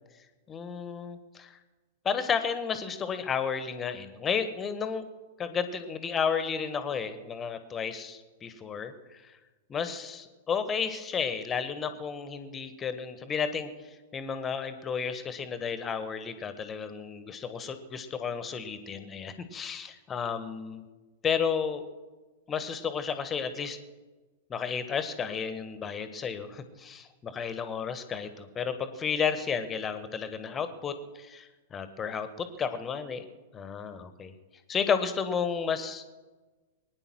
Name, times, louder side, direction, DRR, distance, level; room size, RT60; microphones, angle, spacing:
voice 1, 0.5-1.6 2.0-5.0 5.4-9.3 9.7-20.8 21.2-21.8 22.5-23.8 24.5-33.2 33.5-34.3 34.7-36.0, left 6 dB, 20° left, 11 dB, 1.4 m, -32 dB
22.0 x 9.9 x 6.2 m, 1.3 s
figure-of-eight pair, 100°, 0 cm